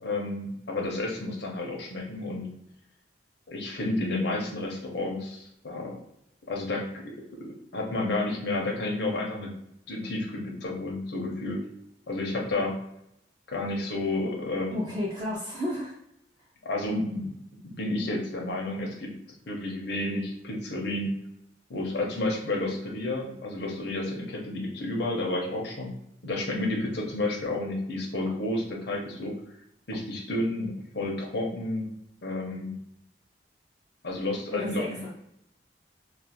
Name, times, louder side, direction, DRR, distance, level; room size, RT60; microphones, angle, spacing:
voice 1, 0.0-2.5 3.5-6.0 6.5-7.0 7.4-9.5 9.9-11.6 12.1-12.8 13.5-14.9 16.6-19.1 19.5-21.1 21.7-25.9 26.2-29.3 29.9-31.9 32.2-32.7 34.0-35.0, left 2 dB, 65° left, -1 dB, 0.7 m, -31 dB
voice 2, 14.7-15.9 34.5-35.1, left 1 dB, 25° right, -7 dB, 0.5 m, -32 dB
2.4 x 2.4 x 2.8 m, 0.78 s
head